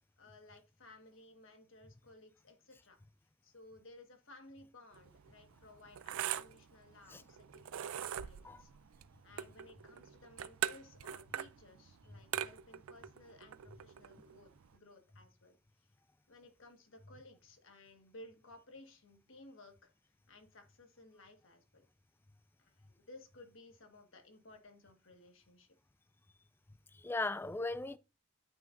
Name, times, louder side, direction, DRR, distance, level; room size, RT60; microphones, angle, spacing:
voice 1, 0.2-3.0 3.4-8.7 9.2-15.5 16.3-21.9 22.6-25.7, left 2 dB, 65° left, 1.5 m, -58 dB
sound 1, 4.9-14.8, right 10 dB, 85° right, 0.4 m, -43 dB
voice 2, 26.9-28.0, left 2 dB, 10° left, 0.3 m, -37 dB
9.3 x 7.9 x 2.6 m
head